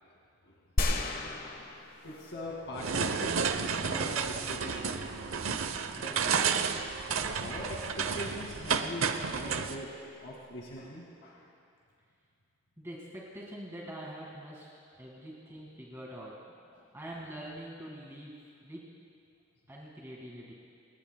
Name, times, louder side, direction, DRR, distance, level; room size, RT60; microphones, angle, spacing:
sound 1, 0.8-2.5 3.0-3.1, left 1 dB, 45° left, 1.2 m, -32 dB
voice 1, 2.0-3.3 3.8-4.9 6.1-6.2 7.2-9.9 10.2-11.4 16.7-16.8, left 1 dB, 65° left, -3 dB, 2.1 m, -42 dB
sound 2, 2.7-9.7, right 6 dB, 80° right, 0.8 m, -31 dB
voice 2, 5.9-6.4 12.8-14.7 15.0-16.4 16.9-18.9 19.7-20.5, right 1 dB, 15° right, -4 dB, 1.9 m, -44 dB
28.5 x 19.0 x 2.3 m, 2.3 s
head